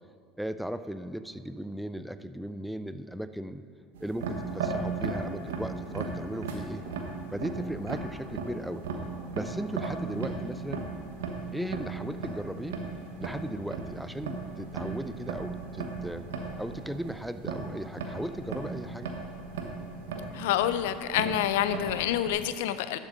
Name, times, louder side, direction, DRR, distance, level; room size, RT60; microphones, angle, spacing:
voice 1, 0.4-3.6 4.0-6.8 7.3-8.8 9.3-10.8 11.5-12.9 13.2-16.3 16.6-19.1, equal, ahead, 12 dB, 0.4 m, -37 dB
sound 1, 3.9-22.3, right 4 dB, 85° right, 1.0 m, -36 dB
voice 2, 20.3-23.0, left 11 dB, 75° left, 12 dB, 0.4 m, -27 dB
11.5 x 7.2 x 3.9 m, 2.3 s
hypercardioid pair, 85°, 0 cm